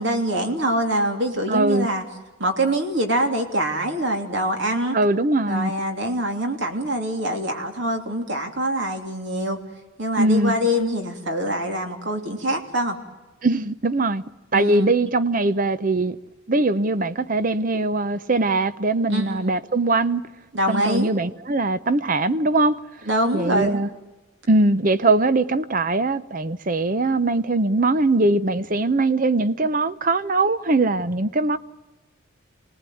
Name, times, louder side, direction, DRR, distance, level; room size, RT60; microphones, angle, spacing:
voice 1, 0.0-2.0 2.4-5.0 5.5-9.6 10.0-13.0 14.5-14.9 19.1-19.6 20.5-21.1 23.1-23.8, right 1 dB, 60° right, 3.2 m, -24 dB
voice 2, 1.5-1.9 4.9-5.7 10.2-10.6 13.4-14.2 14.5-16.2 16.5-20.2 20.7-22.8 23.3-23.9 24.5-31.6, right 2 dB, 40° right, 0.8 m, -21 dB
26.0 x 19.0 x 9.3 m
head